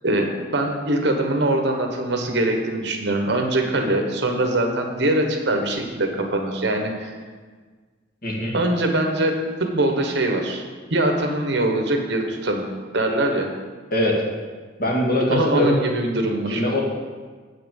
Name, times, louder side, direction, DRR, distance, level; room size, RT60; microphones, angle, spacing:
voice 1, 0.0-7.1 8.5-9.3 9.6-10.6 10.9-12.7 12.9-13.5 15.3-16.6, right 1 dB, 60° right, 3 dB, 1.2 m, -22 dB
voice 2, 8.2-8.5 13.9-14.1 14.8-15.8 16.5-16.8, left 1 dB, 50° left, -3 dB, 2.1 m, -21 dB
8.2 x 5.9 x 7.1 m, 1.5 s
head